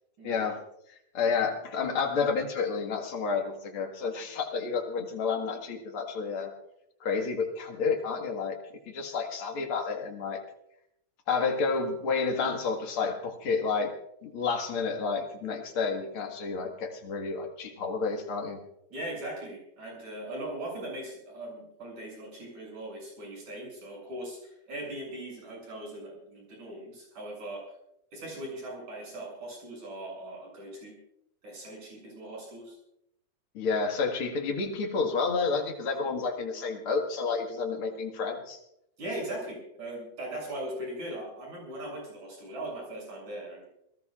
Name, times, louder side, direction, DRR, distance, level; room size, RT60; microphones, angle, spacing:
voice 1, 0.2-0.6 1.1-6.5 7.0-8.6 8.9-10.4 11.3-13.9 14.2-18.6 33.5-38.6, left 5 dB, 45° left, 2 dB, 2.0 m, -30 dB
voice 2, 18.9-27.6 28.1-30.9 31.4-32.8 39.0-43.6, right 1 dB, 50° right, -2 dB, 8.8 m, -39 dB
28.0 x 18.5 x 2.5 m, 0.78 s
omnidirectional pair, 4.2 m